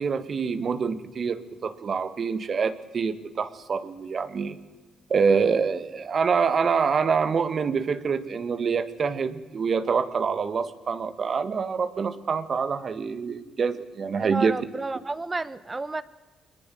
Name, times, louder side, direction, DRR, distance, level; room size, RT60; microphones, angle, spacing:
voice 1, 0.0-4.6 5.1-14.5, right 5 dB, 50° right, 11 dB, 1.8 m, -26 dB
voice 2, 14.2-16.0, right 3 dB, 25° right, 15 dB, 1.3 m, -31 dB
23.0 x 20.5 x 7.9 m, 1.2 s
cardioid pair, 70°, 0 cm